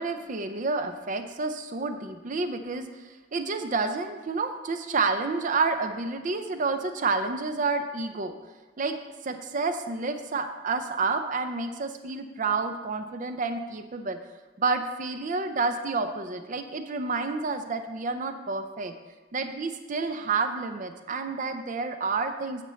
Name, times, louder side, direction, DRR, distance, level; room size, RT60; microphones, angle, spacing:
voice 1, 0.0-8.3 8.8-9.0 9.2-14.2 14.6-18.9 19.3-22.6, right 4 dB, 40° right, 8 dB, 0.5 m, -29 dB
9.1 x 4.4 x 6.9 m, 1.3 s
head